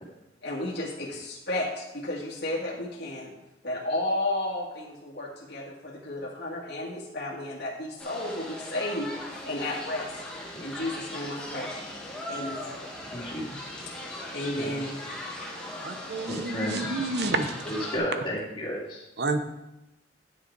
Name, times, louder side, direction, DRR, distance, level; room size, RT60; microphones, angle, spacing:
voice 1, 0.4-3.3 3.6-9.1 9.4-10.1 10.6-11.7 12.3-12.8 14.3-15.0, left 1 dB, 60° left, -4 dB, 1.9 m, -32 dB
sound 1, 8.0-18.0, left 1 dB, 5° left, 1.5 m, -39 dB
voice 2, 13.1-13.7 14.5-14.8 16.3-16.8 17.7-19.0, equal, 25° left, -5 dB, 2.5 m, -33 dB
voice 3, 15.8-17.5 19.2-19.4, right 3 dB, 60° right, 8 dB, 0.8 m, -29 dB
9.8 x 6.8 x 4.6 m, 0.94 s
head